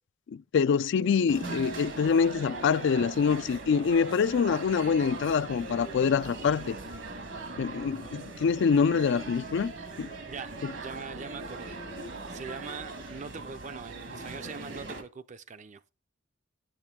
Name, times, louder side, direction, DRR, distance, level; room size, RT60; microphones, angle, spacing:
voice 1, 0.3-6.8 7.6-9.7 10.0-10.1 10.6-10.7, left 6 dB, 65° left, 0.3 m, -25 dB
sound 1, 1.3-15.0, right 3 dB, 70° right, 1.5 m, -40 dB
voice 2, 10.2-11.8 12.3-15.8, right 5 dB, 40° right, 0.5 m, -42 dB
9.8 x 6.1 x 3.6 m
head